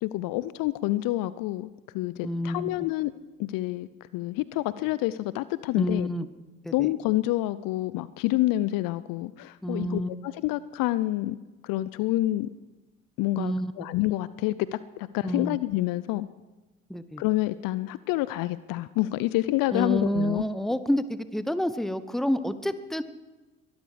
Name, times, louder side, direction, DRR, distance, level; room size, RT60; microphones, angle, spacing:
voice 1, 0.0-3.1 3.4-6.1 6.7-11.4 11.6-12.5 13.2-16.3 17.2-20.4, left 16 dB, 55° left, 17 dB, 0.6 m, -28 dB
voice 2, 2.2-2.7 5.8-6.3 6.6-6.9 9.6-10.1 13.4-13.7 15.2-15.6 16.9-17.2 19.7-23.0, equal, ahead, 13 dB, 1.1 m, -28 dB
22.5 x 12.5 x 5.0 m, 1.1 s
figure-of-eight pair, 55°, 40 cm